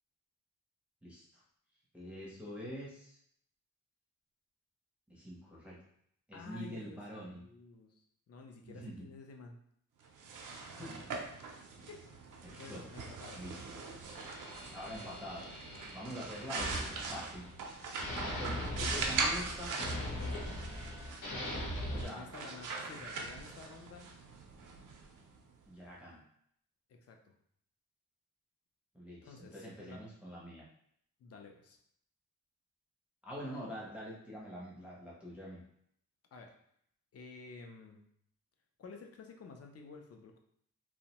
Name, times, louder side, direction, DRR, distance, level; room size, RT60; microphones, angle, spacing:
voice 1, 1.9-3.2 5.1-5.8 6.3-7.4 8.6-9.1 10.7-11.2 11.8-11.9 12.4-12.9 13.3-13.8 14.7-15.5 15.9-17.4 18.2-19.8 21.9-22.3 25.7-26.2 28.9-30.6 33.2-35.6, equal, 5° right, -6 dB, 0.6 m, -45 dB
voice 2, 6.3-9.6 11.9-13.5 15.7-16.3 21.9-24.1 26.9-27.3 29.2-30.0 31.2-31.8 36.3-36.6 37.1-38.0 38.8-40.4, left 4 dB, 50° left, 3 dB, 0.4 m, -52 dB
sound 1, 10.0-25.7, right 4 dB, 70° right, 0.5 m, -41 dB
sound 2, 14.0-17.7 18.0-22.0, left 1 dB, 85° left, 0.9 m, -40 dB
2.6 x 2.1 x 2.8 m, 0.69 s
wide cardioid pair, 125°, 32 cm